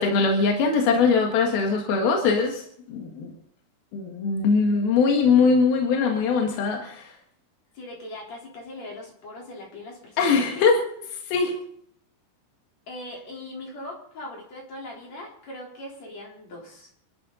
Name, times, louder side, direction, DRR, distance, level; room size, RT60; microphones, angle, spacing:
voice 1, 0.0-2.6 2.9-3.3 3.9-7.1 10.2-10.8 11.3-11.6, left 4 dB, 80° left, 2 dB, 3.6 m, -21 dB
voice 2, 7.7-10.7 12.9-16.9, left 1 dB, 45° left, -2 dB, 4.9 m, -40 dB
27.0 x 12.0 x 4.0 m, 0.65 s
omnidirectional pair, 4.3 m